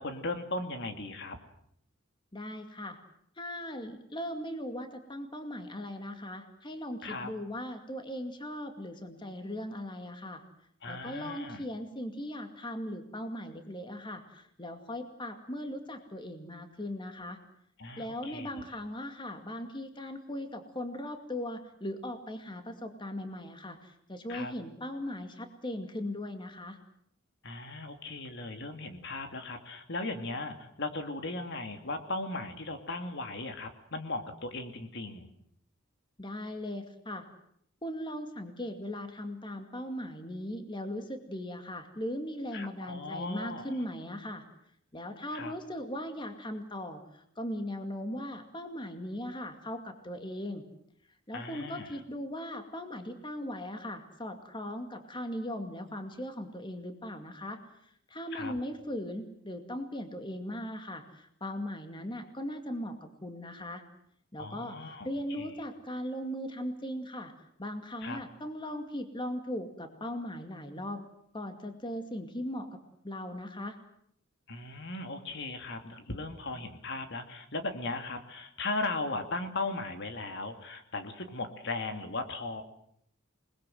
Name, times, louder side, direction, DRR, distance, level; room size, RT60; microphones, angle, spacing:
voice 1, 0.0-1.4 7.0-7.3 10.8-11.6 17.8-18.7 24.3-24.5 27.4-35.3 42.5-43.8 45.3-45.5 51.3-51.9 58.3-58.5 64.4-65.6 68.0-68.2 74.5-82.6, left 2 dB, 60° left, 6 dB, 2.7 m, -37 dB
voice 2, 2.3-3.0 3.4-10.4 10.9-17.4 18.0-26.8 36.2-37.3 37.8-44.4 44.9-50.6 51.3-57.6 58.1-63.8 64.3-67.3 67.6-71.0 71.3-72.8 73.0-73.8, left 1 dB, 25° left, 6 dB, 2.3 m, -38 dB
28.0 x 20.5 x 7.9 m, 0.69 s
head